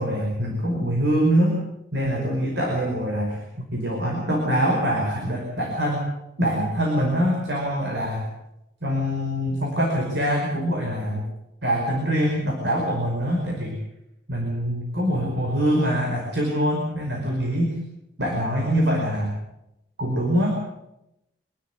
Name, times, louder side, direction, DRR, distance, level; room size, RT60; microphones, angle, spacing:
voice 1, 0.0-1.6 1.9-3.5 3.7-6.1 6.4-8.3 8.8-11.3 11.6-13.8 14.3-17.7 18.2-19.3 20.0-20.5, equal, 70° right, 0 dB, 5.3 m, -24 dB
25.5 x 13.0 x 9.7 m, 0.88 s
head